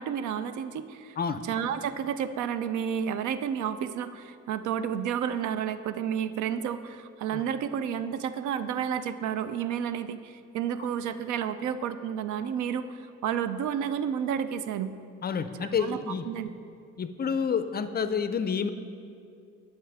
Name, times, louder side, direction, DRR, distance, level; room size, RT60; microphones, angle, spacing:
voice 1, 0.0-1.2 1.4-14.9 15.6-16.0 16.3-16.5, right 8 dB, 75° right, 12 dB, 0.4 m, -31 dB
voice 2, 15.2-16.3 17.0-18.7, left 6 dB, 35° left, 10 dB, 0.4 m, -29 dB
11.5 x 5.6 x 3.4 m, 2.4 s
cardioid pair, 90°, 30 cm